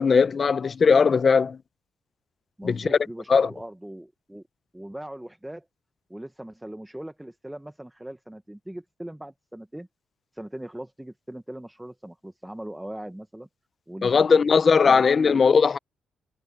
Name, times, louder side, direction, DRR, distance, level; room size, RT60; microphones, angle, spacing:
voice 1, 0.0-1.6 2.6-3.0 3.3-3.5 14.0-15.8, left 5 dB, 30° left, 0.4 m, -19 dB
voice 2, 2.6-4.4 4.7-5.7 6.1-9.9 10.3-13.5 13.9-14.4 14.9-15.4, right 1 dB, 5° right, 0.7 m, -39 dB
cardioid pair, 175°, 0 cm